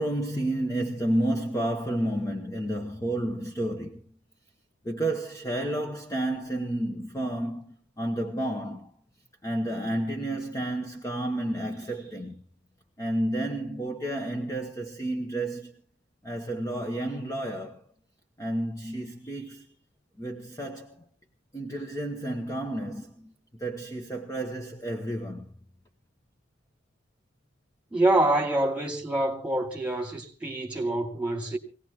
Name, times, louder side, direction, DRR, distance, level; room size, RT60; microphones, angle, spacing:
voice 1, 0.0-4.1 4.8-8.9 9.4-12.4 13.0-15.8 16.2-17.8 18.4-19.7 20.2-21.0 21.5-25.5, right 1 dB, 15° left, 1.1 m, -31 dB
voice 2, 27.9-31.6, right 1 dB, 5° right, 2.4 m, -26 dB
23.5 x 18.0 x 3.0 m
head